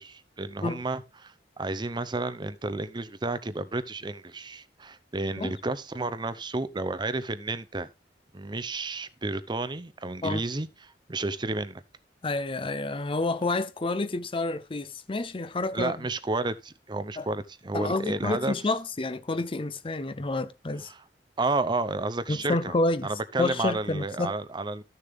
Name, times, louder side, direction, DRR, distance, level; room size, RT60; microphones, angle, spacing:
voice 1, 0.0-7.9 8.3-10.7 11.1-11.8 15.7-18.5 20.9-21.0 21.4-22.7 23.0-24.8, right 2 dB, 25° right, 0.7 m, -31 dB
voice 2, 12.2-16.1 17.2-17.3 17.7-20.9 22.3-23.1 23.4-24.4, left 2 dB, 30° left, 0.6 m, -29 dB
13.5 x 6.8 x 3.5 m
head